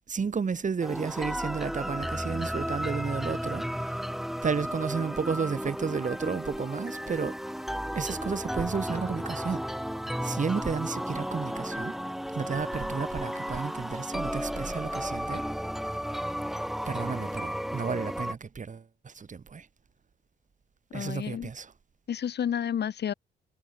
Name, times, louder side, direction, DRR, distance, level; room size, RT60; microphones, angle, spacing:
voice 1, 0.1-4.0 4.4-7.5 7.9-9.6 10.2-11.9 12.3-15.4 16.8-19.7 20.9-21.7, right 5 dB, 40° right, 7.5 m, -32 dB
sound 1, 0.8-18.3, equal, ahead, 4.0 m, -33 dB
voice 2, 20.9-21.5 22.1-23.1, left 9 dB, 55° left, 3.2 m, -30 dB
cardioid pair, 90°, 20 cm